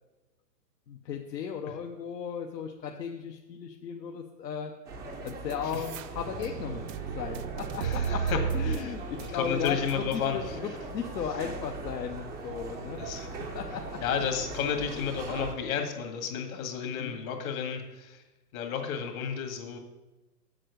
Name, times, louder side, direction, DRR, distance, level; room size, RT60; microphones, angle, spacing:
voice 1, 0.9-4.7 5.2-6.9 7.1-13.0 13.5-13.8 17.0-17.2, left 7 dB, 75° left, 2 dB, 1.1 m, -36 dB
sound 1, 4.9-15.5, right 3 dB, 5° right, 0.4 m, -40 dB
sound 2, 5.3-10.2, right 7 dB, 50° right, 0.7 m, -34 dB
voice 2, 7.8-8.4 8.9-10.6 13.0-13.3 14.0-18.2 18.5-19.8, left 7 dB, 55° left, 4 dB, 2.2 m, -32 dB
7.6 x 6.5 x 8.1 m, 1.1 s
hypercardioid pair, 130°, 50 cm